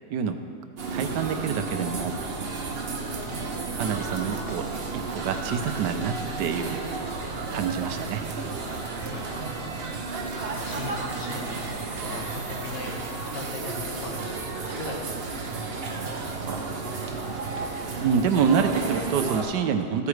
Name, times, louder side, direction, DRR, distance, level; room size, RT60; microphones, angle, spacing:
sound 1, 0.8-19.4, right 3 dB, 45° right, 0.9 m, -32 dB
voice 1, 0.9-2.1 3.7-4.7 4.9-6.8 7.5-8.2 17.9-20.1, right 7 dB, 80° right, 8 dB, 1.3 m, -26 dB
voice 2, 3.0-3.6 8.8-9.6 9.9-10.1 10.5-13.0 13.3-14.2 14.6-16.0 17.0-17.5, left 4 dB, 85° left, 3 dB, 1.7 m, -41 dB
14.5 x 8.3 x 3.2 m, 2.3 s
omnidirectional pair, 1.9 m